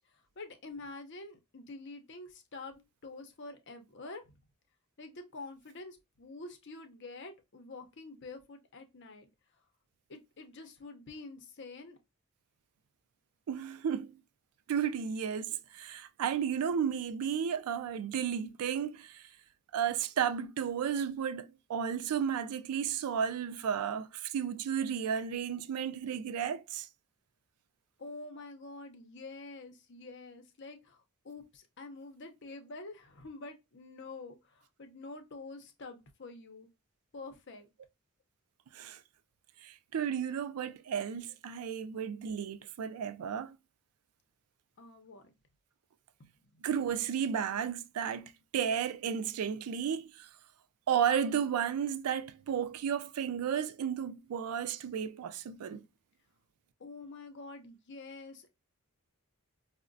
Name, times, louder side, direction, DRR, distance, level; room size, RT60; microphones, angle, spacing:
voice 1, 0.1-4.4 5.0-9.3 10.1-12.0 28.0-36.7 37.1-37.7 44.8-45.3 46.2-46.6 56.8-58.5, left 3 dB, 55° left, 0.6 m, -47 dB
voice 2, 13.5-14.2 14.7-19.2 19.7-26.9 38.7-39.0 39.6-43.6 46.6-50.3 50.9-55.8, right 8 dB, 85° right, 0.4 m, -33 dB
4.8 x 2.1 x 2.5 m
head